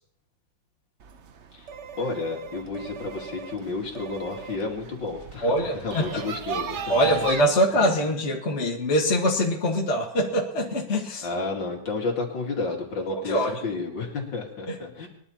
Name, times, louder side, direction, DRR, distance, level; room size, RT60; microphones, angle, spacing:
sound 1, 1.0-7.4, right 5 dB, 85° right, 0.6 m, -37 dB
voice 1, 2.0-7.3 7.8-8.1 11.2-15.1, left 3 dB, 60° left, 0 dB, 3.0 m, -31 dB
voice 2, 5.4-6.0 6.9-11.3 13.1-13.6 14.7-14.8, equal, 35° left, -1 dB, 1.9 m, -23 dB
20.5 x 11.5 x 4.3 m, 0.69 s
omnidirectional pair, 2.3 m